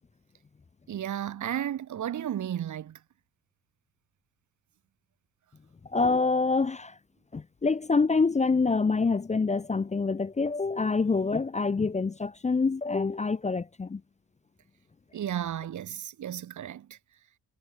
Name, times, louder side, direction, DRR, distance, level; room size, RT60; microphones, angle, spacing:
voice 1, 0.9-3.0 15.1-17.0, right 10 dB, 55° right, 1.0 m, -33 dB
voice 2, 5.9-7.0 7.3-14.0, left 4 dB, 20° left, 0.6 m, -26 dB
cardioid pair, 110°, 35 cm